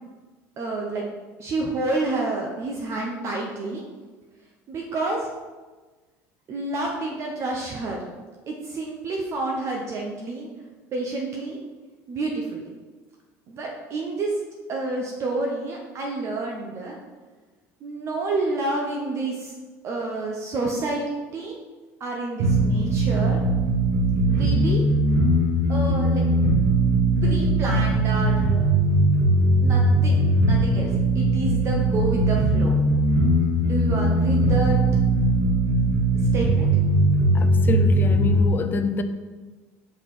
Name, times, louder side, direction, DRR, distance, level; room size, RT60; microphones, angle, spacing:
voice 1, 0.6-1.0 1.4-3.8 4.7-5.3 6.5-8.0 8.5-10.5 10.9-11.6 12.1-12.7 13.5-14.4 14.7-17.0 17.8-19.5 19.8-21.6 22.0-23.4 24.2-24.8 25.7-26.2 27.2-28.6 29.6-30.2 30.5-32.7 33.6-34.8 36.3-36.7, right 2 dB, 45° right, 0.9 m, -29 dB
sound 1, 22.4-38.4, right 1 dB, 75° right, 1.3 m, -20 dB
voice 2, 37.3-39.0, left 4 dB, 30° left, 0.5 m, -26 dB
5.7 x 4.5 x 4.6 m
supercardioid pair, 110°, 7 cm